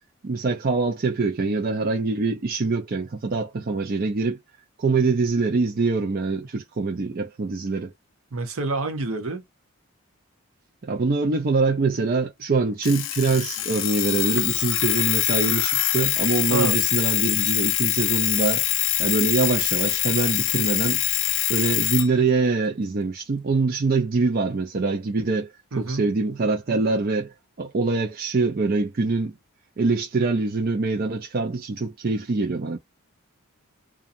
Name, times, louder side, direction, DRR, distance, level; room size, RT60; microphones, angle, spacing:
voice 1, 0.2-4.4 4.8-7.9 10.8-21.0 21.5-25.5 25.8-29.3 29.8-32.8, right 3 dB, 40° right, 0.4 m, -24 dB
voice 2, 8.3-9.4 16.5-16.8 25.7-26.0, right 3 dB, 70° right, 0.9 m, -27 dB
Alarm, 12.8-22.1, left 13 dB, 55° left, 0.4 m, -24 dB
2.4 x 2.3 x 2.6 m
head